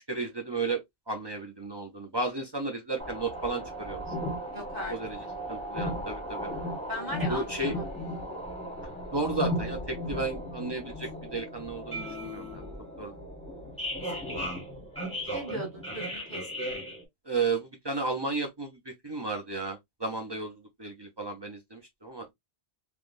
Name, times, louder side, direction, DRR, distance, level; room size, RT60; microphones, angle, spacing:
voice 1, 0.1-4.0 4.9-5.2 5.5-6.5 7.3-7.7 9.1-12.7 13.0-13.1 17.3-22.3, right 3 dB, 35° right, 0.4 m, -33 dB
sound 1, 3.0-17.0, equal, 5° left, 1.0 m, -36 dB
voice 2, 4.5-4.9 6.9-7.9 14.2-14.3 15.3-16.4, equal, 20° right, 1.4 m, -37 dB
3.4 x 2.2 x 2.5 m
omnidirectional pair, 1.1 m